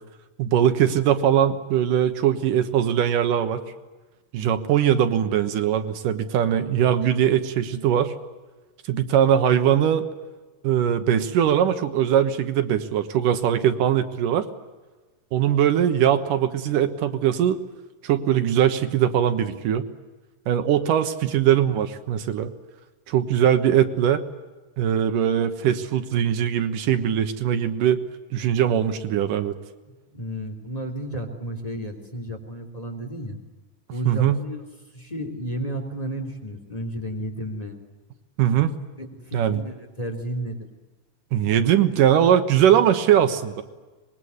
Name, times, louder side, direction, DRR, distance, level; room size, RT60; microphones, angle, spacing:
voice 1, 0.4-3.6 4.3-8.1 8.9-10.1 10.6-14.5 15.3-17.6 18.0-19.9 20.5-22.5 23.1-24.2 24.8-28.0 28.3-29.5 34.1-34.4 38.4-38.8 39.3-39.6 41.3-43.6, right 10 dB, 80° right, 9 dB, 2.9 m, -21 dB
voice 2, 30.1-33.4 33.9-34.6 34.9-37.8 39.0-40.6, equal, 10° left, 4 dB, 2.9 m, -32 dB
25.0 x 21.0 x 9.5 m, 1.2 s
omnidirectional pair, 3.7 m